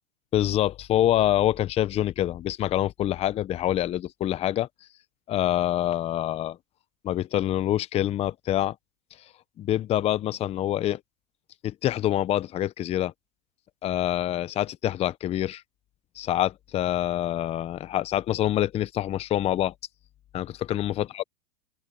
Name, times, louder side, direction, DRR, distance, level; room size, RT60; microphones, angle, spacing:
voice 1, 0.3-4.7 5.3-6.6 7.0-8.8 9.6-11.0 11.6-13.1 13.8-15.6 16.2-19.7 20.3-21.2, left 13 dB, 20° left, 0.6 m, -26 dB
open air
hypercardioid pair, 130°, 34 cm